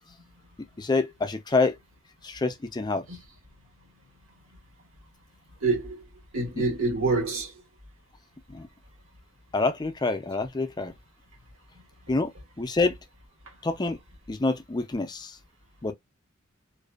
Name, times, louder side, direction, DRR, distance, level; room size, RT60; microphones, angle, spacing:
voice 1, 0.8-1.8 2.2-3.1 8.5-8.7 9.5-10.9 12.1-12.3 12.6-13.0 13.6-14.0 14.3-15.4 15.8-15.9, left 3 dB, 20° left, 0.4 m, -26 dB
voice 2, 5.6-6.0 6.3-7.5, right 3 dB, 80° right, 1.4 m, -26 dB
2.5 x 2.3 x 2.3 m
head